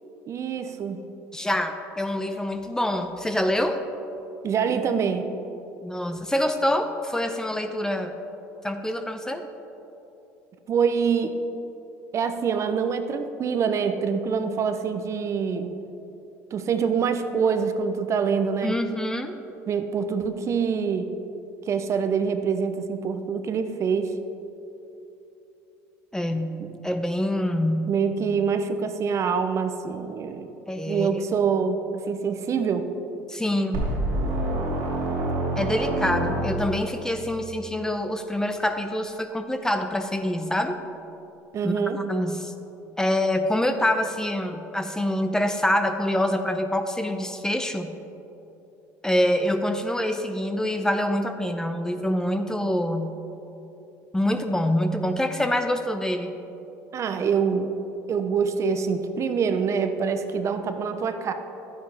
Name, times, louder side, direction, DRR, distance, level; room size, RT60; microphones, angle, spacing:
voice 1, 0.3-1.0 4.4-5.3 10.7-11.3 12.1-15.8 16.5-18.8 19.7-21.1 21.7-24.1 26.6-26.7 27.9-30.5 30.9-32.9 41.5-42.0 56.9-57.7 58.1-61.3, right 6 dB, 45° right, 8 dB, 0.7 m, -25 dB
voice 2, 1.3-3.8 5.8-8.1 8.6-9.5 18.6-19.4 26.1-28.0 30.7-31.2 33.3-33.9 35.6-40.8 41.6-42.5 43.0-47.9 49.0-53.1 54.1-56.3, left 1 dB, 10° left, 7 dB, 0.7 m, -26 dB
sound 1, 33.7-37.0, right 1 dB, 75° right, 2.6 m, -27 dB
12.0 x 9.7 x 3.5 m, 2.9 s
supercardioid pair, 80°, 7 cm